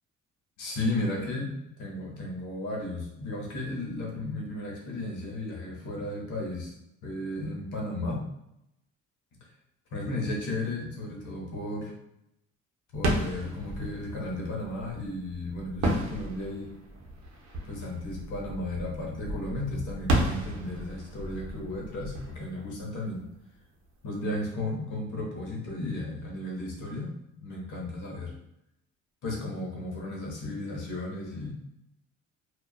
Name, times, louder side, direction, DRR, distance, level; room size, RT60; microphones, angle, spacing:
voice 1, 0.6-6.7 7.0-8.3 9.9-11.9 12.9-16.7 17.6-23.2 24.0-28.3 29.2-31.5, left 2 dB, 80° left, -2 dB, 0.9 m, -34 dB
sound 1, 12.9-23.5, right 1 dB, 60° right, 0.7 m, -33 dB
2.3 x 2.2 x 2.3 m, 0.84 s
cardioid pair, 90°, 30 cm